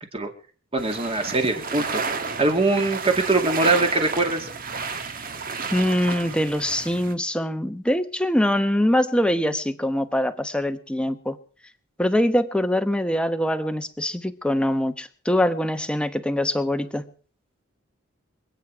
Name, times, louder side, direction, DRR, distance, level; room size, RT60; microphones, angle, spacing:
voice 1, 0.7-2.0 2.4-4.5, right 3 dB, 30° right, 5 dB, 2.3 m, -22 dB
sound 1, 0.8-7.1, right 4 dB, 45° right, 1.5 m, -31 dB
voice 2, 5.7-11.4 12.0-17.1, left 1 dB, 5° left, 9 dB, 1.0 m, -23 dB
26.5 x 9.2 x 4.6 m, 0.43 s
head